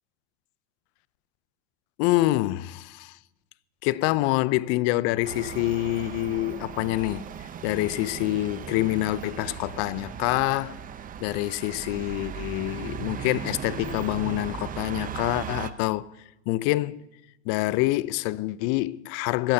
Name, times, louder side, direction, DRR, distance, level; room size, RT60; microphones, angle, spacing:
voice 1, 2.0-3.2 3.8-7.2 7.6-10.8 11.2-16.1 16.5-17.0 17.5-19.5, left 18 dB, 50° left, 0.6 m, -26 dB
sound 1, 5.2-15.7, right 9 dB, 25° right, 0.8 m, -37 dB
25.5 x 14.5 x 2.8 m
hypercardioid pair, 95°, 33 cm